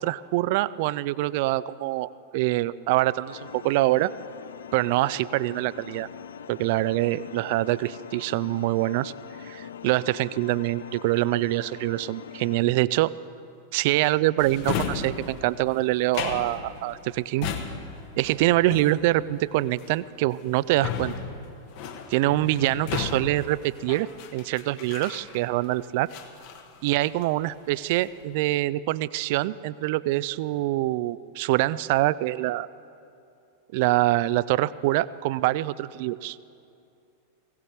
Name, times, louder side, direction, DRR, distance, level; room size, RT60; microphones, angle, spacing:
voice 1, 0.0-4.1 4.7-6.1 6.5-9.1 9.5-13.1 13.7-17.5 18.2-21.1 22.1-26.1 26.8-32.7 33.7-36.4, right 17 dB, 50° right, 19 dB, 0.3 m, -25 dB
sound 1, 3.3-12.6, left 8 dB, 65° left, 0.4 m, -43 dB
Drawer open or close, 14.4-25.7 26.1-27.4 27.7-28.2, left 6 dB, 45° left, 1.2 m, -35 dB
20.0 x 17.0 x 3.3 m, 2.6 s
figure-of-eight pair, 90°, 0 cm